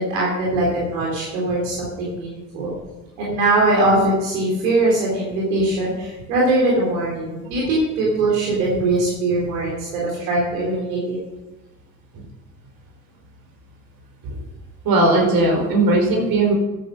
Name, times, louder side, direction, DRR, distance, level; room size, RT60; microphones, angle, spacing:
voice 1, 0.0-2.7 3.2-11.2, right 2 dB, 75° right, -4 dB, 3.8 m, -21 dB
voice 2, 14.8-16.5, right 2 dB, 60° right, 1 dB, 4.8 m, -19 dB
13.0 x 9.2 x 6.3 m, 1.0 s
hypercardioid pair, 55°, 40 cm